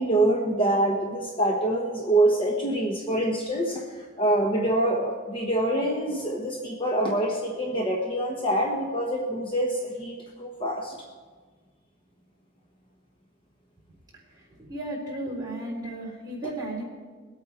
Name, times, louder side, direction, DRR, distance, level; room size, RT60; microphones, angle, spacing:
voice 1, 0.0-3.8 4.2-11.0, right 1 dB, 25° left, 0 dB, 1.1 m, -25 dB
voice 2, 14.6-16.8, right 1 dB, 20° right, -5 dB, 3.9 m, -34 dB
21.5 x 8.7 x 4.4 m, 1.4 s
head